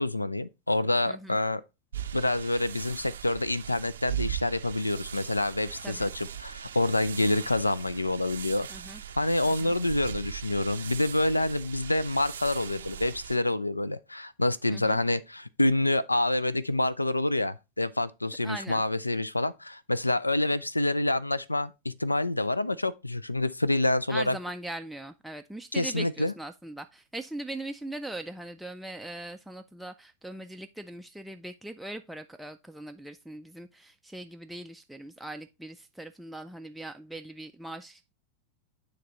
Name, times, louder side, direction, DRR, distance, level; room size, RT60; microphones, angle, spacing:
voice 1, 0.0-1.6 2.1-8.7 9.2-24.4 25.7-26.3, left 2 dB, 85° left, 0.3 m, -27 dB
voice 2, 1.1-1.4 5.8-6.1 8.7-9.0 9.4-9.8 14.7-15.0 18.4-18.8 24.1-38.1, right 1 dB, ahead, 0.3 m, -40 dB
sound 1, 1.9-13.4, right 10 dB, 65° right, 0.5 m, -39 dB
9.1 x 3.3 x 3.9 m
figure-of-eight pair, 90°, 0 cm